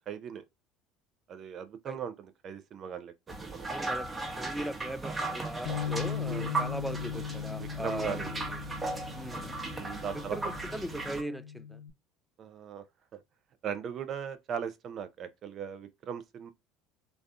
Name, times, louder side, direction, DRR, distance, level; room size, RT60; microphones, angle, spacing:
voice 1, 0.1-0.4 1.3-3.1 3.4-3.9 6.2-6.5 7.6-8.3 9.7-10.4 12.4-12.8 13.1-13.2 13.6-16.5, right 8 dB, 50° right, 0.6 m, -38 dB
sound 1, 3.3-11.2, right 3 dB, 20° right, 1.0 m, -37 dB
voice 2, 3.7-8.6 9.1-9.5 10.1-11.8, equal, ahead, 0.3 m, -39 dB
Bass guitar, 5.7-11.9, left 7 dB, 70° left, 0.4 m, -39 dB
3.2 x 2.6 x 2.3 m
hypercardioid pair, 80°, 0 cm